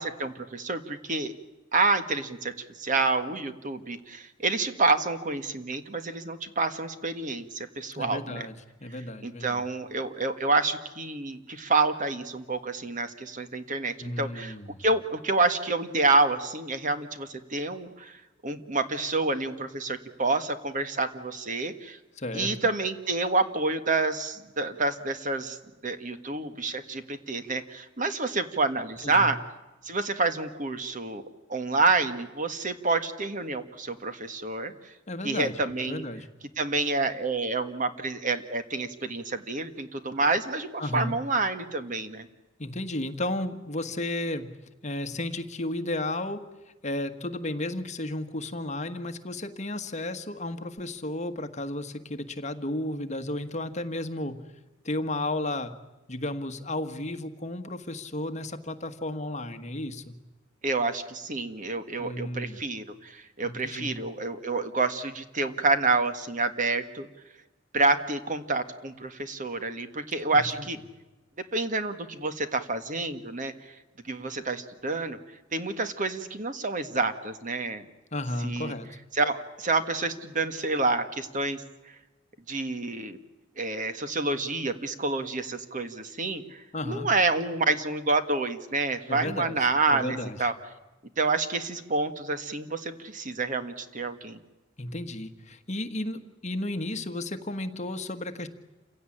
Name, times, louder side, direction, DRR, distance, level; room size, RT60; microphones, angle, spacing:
voice 1, 0.0-1.3 1.7-8.5 9.2-14.5 14.8-18.2 18.4-22.0 22.3-25.6 25.8-29.4 29.8-31.2 31.5-34.7 35.2-36.0 36.6-42.3 60.6-67.1 67.7-70.8 71.5-73.5 74.1-75.2 75.5-77.8 78.4-78.7 79.1-81.6 82.5-83.2 83.6-90.5 91.2-94.4, right 3 dB, 40° right, 9 dB, 1.7 m, -28 dB
voice 2, 7.9-8.5 8.8-9.7 14.0-14.8 22.1-22.5 29.0-29.3 35.1-36.3 40.8-41.2 42.6-44.5 44.8-46.4 46.8-54.4 54.8-55.7 56.1-60.1 62.0-62.6 63.4-63.9 70.3-70.7 78.1-78.9 86.7-87.1 89.1-90.5 94.8-98.5, left 1 dB, 35° left, 8 dB, 1.5 m, -33 dB
28.5 x 17.0 x 10.0 m, 1.1 s
head